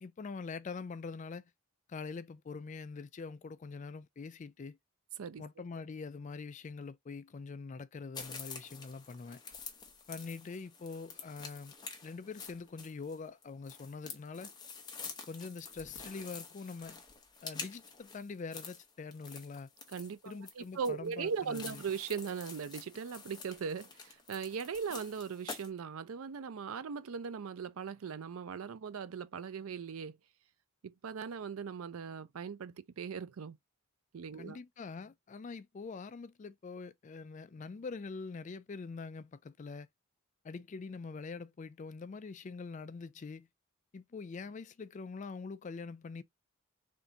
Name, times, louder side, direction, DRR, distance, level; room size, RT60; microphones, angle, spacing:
voice 1, 0.0-1.4 1.9-4.8 5.4-9.4 10.1-11.8 12.0-14.5 15.3-17.0 17.4-19.7 20.3-21.8 34.4-39.9 40.4-43.5 43.9-46.2, left 4 dB, 35° left, 0.3 m, -44 dB
sound 1, 8.1-25.7, left 5 dB, 20° left, 0.7 m, -48 dB
voice 2, 19.9-30.2 30.8-33.6 34.1-34.6, right 6 dB, 75° right, 0.4 m, -39 dB
3.5 x 2.6 x 3.8 m
head